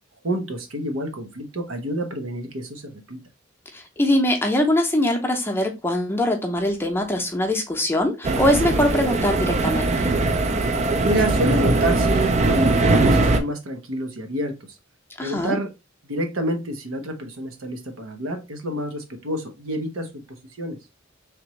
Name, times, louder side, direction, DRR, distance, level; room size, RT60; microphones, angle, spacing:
voice 1, 0.2-3.2 11.0-14.5 15.2-15.7 16.0-20.2 20.6-20.8, right 1 dB, 90° right, 0.9 m, -28 dB
voice 2, 3.7-10.1 15.2-15.6, left 1 dB, 10° left, 0.6 m, -22 dB
sound 1, 8.2-13.4, right 2 dB, 35° right, 0.4 m, -20 dB
3.4 x 3.0 x 2.9 m
head